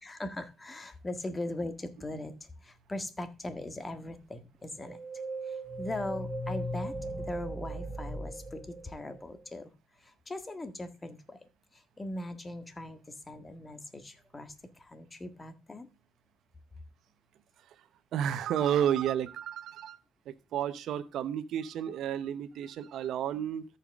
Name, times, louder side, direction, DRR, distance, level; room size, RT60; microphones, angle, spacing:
voice 1, 0.0-5.0 5.4-9.7 10.0-15.9, left 1 dB, 25° left, 9 dB, 1.6 m, -40 dB
sound 1, 4.8-9.4, right 1 dB, 20° right, 3.4 m, -38 dB
voice 2, 18.1-20.0 20.3-23.7, right 10 dB, 75° right, 11 dB, 0.9 m, -31 dB
13.5 x 5.7 x 3.6 m, 0.29 s
cardioid pair, 90°, 0 cm